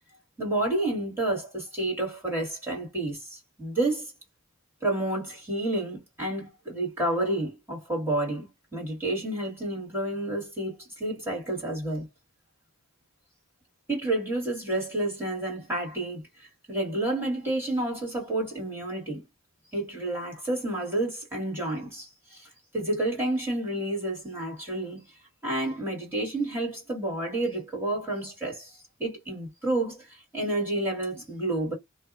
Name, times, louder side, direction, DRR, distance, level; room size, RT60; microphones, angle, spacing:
voice 1, 0.4-4.1 4.8-12.1 13.9-19.2 19.7-22.5 22.7-25.0 25.4-31.7, right 1 dB, 10° right, 1.7 m, -30 dB
2.7 x 2.1 x 2.5 m
head